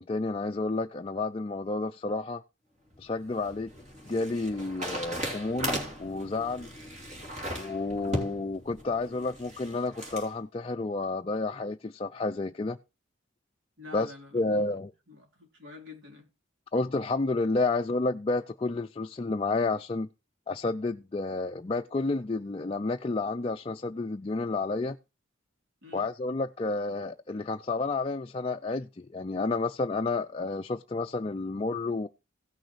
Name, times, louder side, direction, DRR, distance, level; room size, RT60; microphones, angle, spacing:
voice 1, 0.0-2.4 3.0-3.7 4.1-6.7 7.5-12.8 13.9-14.9 16.7-20.1 20.5-25.0 25.9-32.1, left 3 dB, 25° left, 0.4 m, -30 dB
sound 1, 2.9-10.3, equal, 35° right, 2.9 m, -37 dB
voice 2, 13.8-14.7 15.1-16.3 25.8-26.1, left 3 dB, 60° right, 3.6 m, -47 dB
16.5 x 6.4 x 3.1 m
head